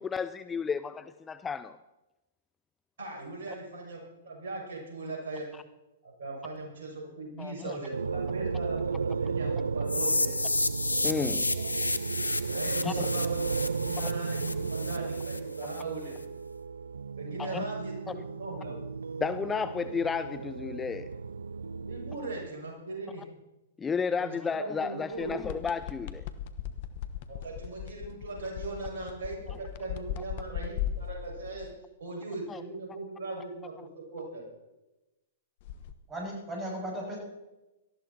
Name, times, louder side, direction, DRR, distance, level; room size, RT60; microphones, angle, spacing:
voice 1, 0.0-1.8 5.5-5.6 7.4-7.8 11.0-11.5 12.8-13.1 14.0-14.1 17.4-17.6 18.1-18.2 19.2-21.1 23.8-26.2 32.5-32.6, left 6 dB, 15° left, 0.5 m, -32 dB
voice 2, 3.0-5.5 6.0-10.4 11.5-11.8 12.5-16.2 17.2-18.9 21.9-23.3 24.2-25.5 27.3-31.7 32.0-34.5, right 2 dB, 60° right, 6.5 m, -39 dB
sound 1, 7.9-22.5, right 5 dB, 80° right, 0.4 m, -34 dB
sound 2, 9.9-15.8, left 2 dB, 90° left, 0.9 m, -31 dB
sound 3, 25.2-31.7 35.6-35.9, left 10 dB, 50° left, 1.1 m, -38 dB
voice 3, 36.1-37.2, right 1 dB, 15° right, 6.7 m, -36 dB
18.5 x 13.5 x 4.3 m
figure-of-eight pair, 110°, 0 cm